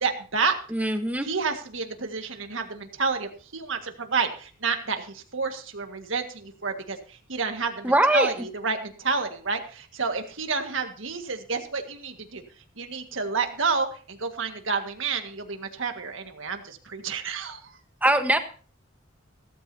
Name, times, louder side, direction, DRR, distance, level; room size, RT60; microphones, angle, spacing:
voice 1, 0.0-0.6 1.2-7.0 7.3-12.4 12.8-17.7, right 4 dB, 70° right, 5 dB, 1.8 m, -29 dB
voice 2, 0.7-1.3 7.8-8.3 18.0-18.4, right 1 dB, 10° right, 6 dB, 1.2 m, -21 dB
16.0 x 14.0 x 2.8 m, 0.40 s
head